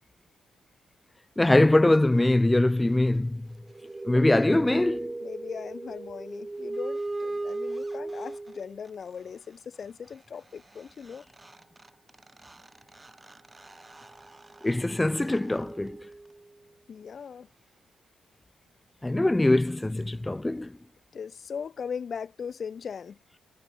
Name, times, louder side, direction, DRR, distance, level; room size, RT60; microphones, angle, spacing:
voice 1, 1.4-3.5 4.0-5.1 14.6-16.0 19.0-20.8, left 1 dB, 15° left, 0.8 m, -23 dB
sound 1, 3.5-8.9 10.8-10.9 11.1-16.5, right 2 dB, 20° right, 0.9 m, -38 dB
voice 2, 5.2-11.3 16.9-17.5 21.1-23.2, left 6 dB, 50° left, 1.7 m, -39 dB
hypercardioid pair, 45°, 0 cm